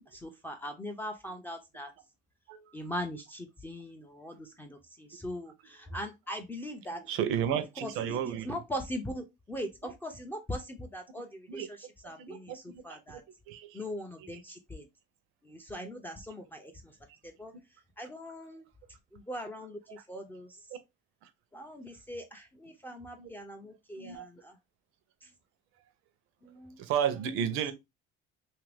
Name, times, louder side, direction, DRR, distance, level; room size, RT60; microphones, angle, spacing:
voice 1, 0.0-1.9 2.7-7.0 7.8-13.2 13.7-14.9 15.4-17.0 17.2-17.5 18.0-18.7 19.1-20.8 21.5-24.6 25.2-25.3 26.4-26.8, equal, 10° left, 0.3 m, -41 dB
voice 2, 6.9-8.6 9.8-9.9 11.5-11.7 12.2-13.2 13.5-13.8 15.8-15.9 19.9-20.0 21.2-21.3 23.2-23.3 24.0-24.3 26.8-27.7, right 9 dB, 85° right, 0.6 m, -33 dB
2.8 x 2.5 x 3.2 m
cardioid pair, 165°, 21 cm